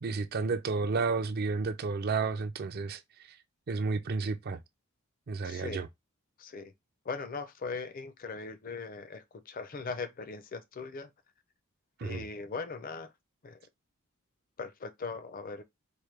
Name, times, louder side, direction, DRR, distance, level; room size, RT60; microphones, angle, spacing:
voice 1, 0.0-3.0 3.7-4.6 5.3-5.9 12.0-12.3, right 4 dB, 45° right, 0.4 m, -31 dB
voice 2, 5.4-5.8 6.4-6.7 7.1-11.1 12.0-13.1 13.4-13.6 14.6-15.6, left 4 dB, 40° left, 0.5 m, -39 dB
4.5 x 2.2 x 3.2 m
head